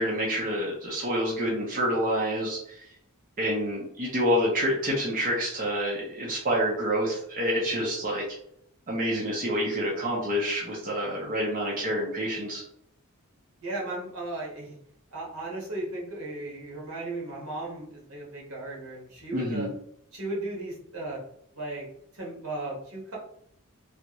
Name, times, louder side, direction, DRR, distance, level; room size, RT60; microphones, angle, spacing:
voice 1, 0.0-2.9 3.4-8.2 8.9-12.6 19.3-19.7, equal, 40° right, -4 dB, 0.8 m, -28 dB
voice 2, 13.6-14.7 15.1-19.7 20.1-21.2 21.5-21.9 22.1-23.2, right 2 dB, 75° right, -3 dB, 1.4 m, -36 dB
3.2 x 2.5 x 3.0 m, 0.69 s
head